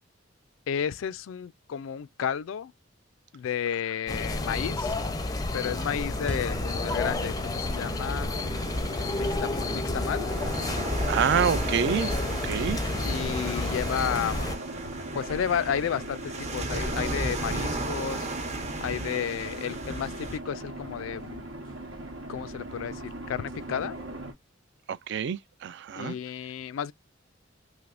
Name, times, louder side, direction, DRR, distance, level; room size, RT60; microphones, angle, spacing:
voice 1, 0.7-2.7 3.3-4.9 5.5-8.3 9.2-10.3 13.0-14.4 15.1-18.3 18.8-21.4 22.3-24.0 26.0-26.9, left 8 dB, 80° left, 0.3 m, -32 dB
sound 1, 4.1-14.5, left 2 dB, 20° left, 0.5 m, -30 dB
sound 2, 6.2-24.3, right 1 dB, 85° right, 1.1 m, -40 dB
sound 3, 8.5-20.4, right 2 dB, 35° right, 0.7 m, -36 dB
voice 2, 11.1-12.8 24.9-26.2, right 7 dB, 60° right, 0.3 m, -28 dB
3.3 x 2.9 x 2.4 m
head